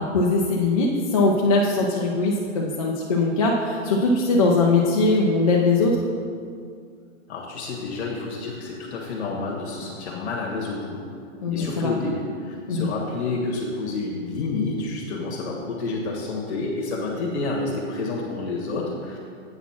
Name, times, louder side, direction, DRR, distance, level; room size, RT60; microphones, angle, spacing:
voice 1, 0.0-6.0 11.4-11.9 12.7-12.9, left 3 dB, 30° left, -3 dB, 0.4 m, -21 dB
voice 2, 7.3-11.1 11.5-19.2, left 3 dB, 55° left, -2 dB, 1.4 m, -29 dB
8.5 x 4.1 x 5.8 m, 2.2 s
hypercardioid pair, 160°, 39 cm